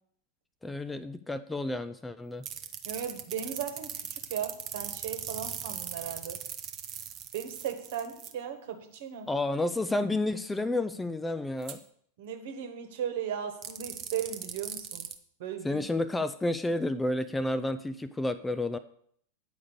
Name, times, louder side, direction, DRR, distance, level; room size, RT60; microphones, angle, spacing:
voice 1, 0.6-2.5 9.3-11.8 15.6-18.8, left 2 dB, 10° left, 12 dB, 0.4 m, -30 dB
sound 1, 2.4-8.3 11.6-11.8 13.6-15.1, right 9 dB, 35° right, 0.8 m, -39 dB
voice 2, 2.8-6.4 7.3-9.3 12.2-15.1 15.4-15.8, right 9 dB, 55° right, 7 dB, 1.3 m, -37 dB
9.4 x 4.9 x 6.8 m, 0.64 s
figure-of-eight pair, 90°, 0 cm